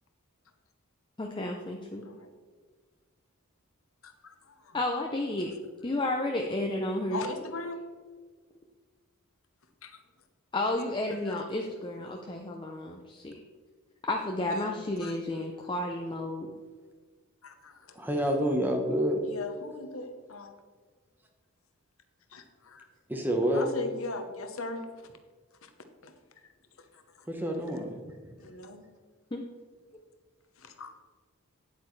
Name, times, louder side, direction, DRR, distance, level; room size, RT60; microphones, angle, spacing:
voice 1, 1.2-2.1 4.7-5.5 5.8-7.2 10.5-13.4 14.0-16.5 29.3-29.4, left 1 dB, 20° left, 2 dB, 0.6 m, -32 dB
voice 2, 4.0-4.8 7.1-7.8 9.8-10.0 11.3-11.4 12.0-12.2 14.6-14.7 15.0-15.1 17.4-18.2 19.2-20.6 22.3-22.9 23.5-25.1 25.6-25.7 26.0-26.1 26.9-27.0 28.4-28.8 30.6-30.9, left 3 dB, 70° left, 7 dB, 1.0 m, -40 dB
voice 3, 18.0-19.2 23.1-23.7 27.3-28.2, equal, 10° right, 3 dB, 1.0 m, -28 dB
9.3 x 8.4 x 3.2 m, 1.5 s
head